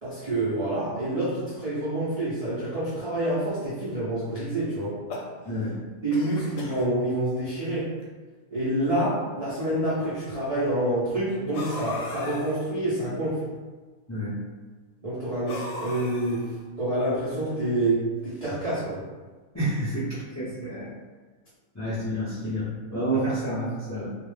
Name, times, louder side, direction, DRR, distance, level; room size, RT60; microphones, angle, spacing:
voice 1, 0.0-5.0 6.0-7.9 8.5-13.4 15.0-16.5 16.8-19.0, right 1 dB, 65° right, -9 dB, 0.3 m, -27 dB
sound 1, 4.8-5.7 6.1-6.9 7.7-7.8 8.0-8.1 9.1-9.2 11.5-12.6 15.5-16.6, left 2 dB, 70° left, 0.9 m, -38 dB
voice 2, 14.1-14.4 19.5-20.9 21.7-24.1, right 1 dB, 25° left, -9 dB, 0.3 m, -29 dB
2.4 x 2.0 x 3.1 m, 1.4 s
omnidirectional pair, 1.5 m